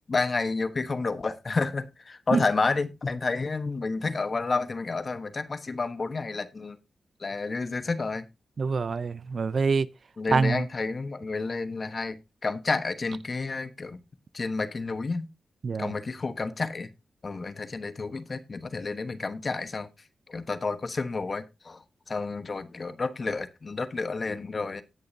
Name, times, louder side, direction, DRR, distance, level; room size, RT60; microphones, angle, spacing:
voice 1, 0.1-6.8 7.2-8.2 10.2-14.0 14.3-15.3 15.8-16.9 17.2-19.9 20.3-24.8, left 3 dB, 45° left, 1.2 m, -30 dB
voice 2, 8.6-9.9 10.3-10.6 15.6-15.9, right 4 dB, 60° right, 0.5 m, -25 dB
18.0 x 6.6 x 2.7 m
cardioid pair, 70°, 0 cm